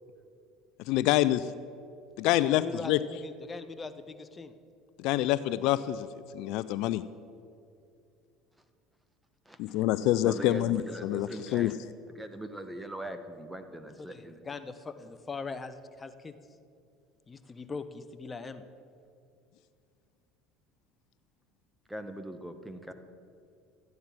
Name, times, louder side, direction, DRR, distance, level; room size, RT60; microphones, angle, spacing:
voice 1, 0.9-1.5 2.2-3.0 5.0-6.1 6.3-7.0 9.6-11.7, left 14 dB, 65° left, 15 dB, 0.4 m, -26 dB
voice 2, 2.4-2.9 3.2-4.5 14.0-16.3 17.3-18.6, left 4 dB, 25° left, 11 dB, 0.8 m, -41 dB
voice 3, 9.4-9.8 10.2-11.7 12.1-14.4 21.9-22.9, right 1 dB, 5° right, 8 dB, 1.2 m, -41 dB
13.0 x 9.5 x 5.9 m, 2.4 s
hypercardioid pair, 85°, 0 cm